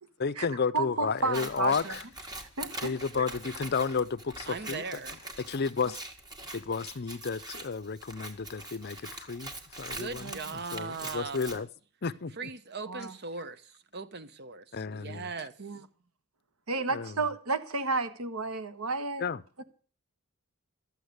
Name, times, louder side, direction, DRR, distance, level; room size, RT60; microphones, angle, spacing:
voice 1, 0.2-2.0 2.8-4.8 5.4-6.0 6.5-11.7 12.0-12.3 14.7-15.3 16.7-17.3 19.2-19.4, left 5 dB, 50° left, 0.6 m, -32 dB
voice 2, 0.7-1.9 2.6-3.2 10.2-10.4 12.9-13.1 15.6-15.8 16.7-19.2, right 3 dB, 85° right, 1.5 m, -32 dB
Scissors, 1.2-11.6, right 2 dB, 20° right, 2.0 m, -43 dB
voice 3, 4.5-5.2 9.9-11.6 12.4-15.5, right 4 dB, 50° right, 1.1 m, -39 dB
13.5 x 8.6 x 8.1 m
head